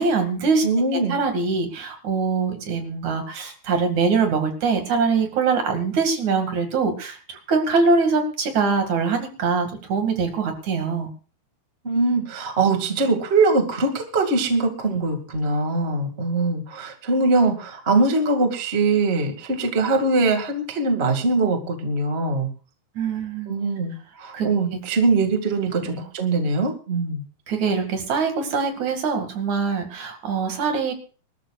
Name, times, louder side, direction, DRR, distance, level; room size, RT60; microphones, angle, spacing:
voice 1, 0.0-0.7 1.1-11.1 22.9-23.5 24.3-24.5 24.7-24.8 25.8-26.0 27.5-30.9, right 4 dB, 50° right, 5 dB, 3.0 m, -23 dB
voice 2, 0.6-1.2 11.8-22.5 23.5-27.2, right 3 dB, 70° right, 4 dB, 0.6 m, -22 dB
25.5 x 13.5 x 2.4 m, 0.37 s
omnidirectional pair, 5.3 m